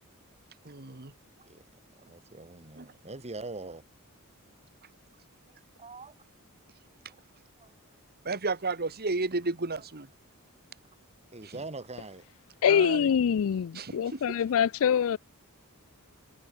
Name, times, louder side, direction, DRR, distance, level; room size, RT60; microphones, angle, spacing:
voice 1, 0.7-1.1 2.8-2.9 8.2-10.1 12.7-13.1 13.8-14.2, right 3 dB, 45° right, 1.9 m, -32 dB
voice 2, 2.0-3.8 5.8-6.1 7.6-8.0 9.8-9.9 11.3-12.3, right 3 dB, 30° right, 2.9 m, -43 dB
voice 3, 12.6-15.2, left 8 dB, 65° left, 0.4 m, -25 dB
head